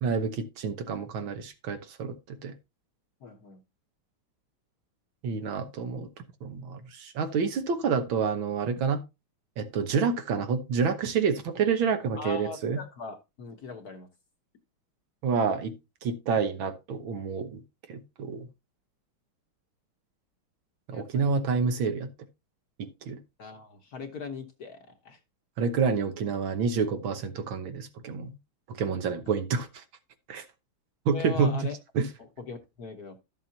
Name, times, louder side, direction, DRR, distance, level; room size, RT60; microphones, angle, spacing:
voice 1, 0.0-2.5 5.2-6.1 6.4-9.0 9.6-12.8 15.2-15.7 16.0-17.6 17.9-18.5 20.9-22.1 22.8-23.2 25.6-28.4 28.7-29.8 30.3-30.4 31.1-32.1, right 5 dB, 65° right, 1.8 m, -28 dB
voice 2, 3.2-3.6 12.2-14.1 20.9-21.4 23.4-25.2 31.1-31.7 32.2-33.2, left 4 dB, 50° left, 1.4 m, -40 dB
12.5 x 7.5 x 2.7 m
omnidirectional pair, 2.4 m